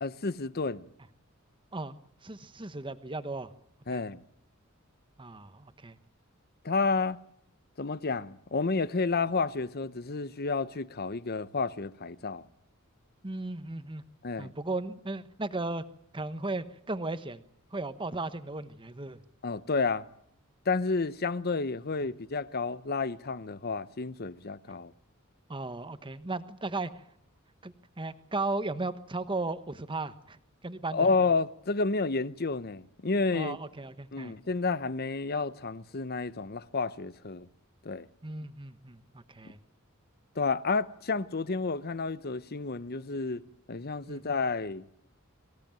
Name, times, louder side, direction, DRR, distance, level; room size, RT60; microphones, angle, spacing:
voice 1, 0.0-0.8 3.9-4.2 6.6-7.2 7.8-12.5 14.2-14.5 19.4-20.0 20.7-24.9 30.9-33.6 34.1-37.5 37.8-38.1 40.4-43.4 43.7-44.9, left 4 dB, 50° left, 0.9 m, -30 dB
voice 2, 2.2-3.5 3.9-4.0 5.2-6.0 13.2-14.0 14.4-15.8 16.1-17.4 17.7-19.2 25.5-26.9 27.6-31.1 33.3-34.3 38.2-39.6 44.1-44.2, right 2 dB, 25° right, 1.2 m, -36 dB
25.0 x 16.5 x 9.0 m
head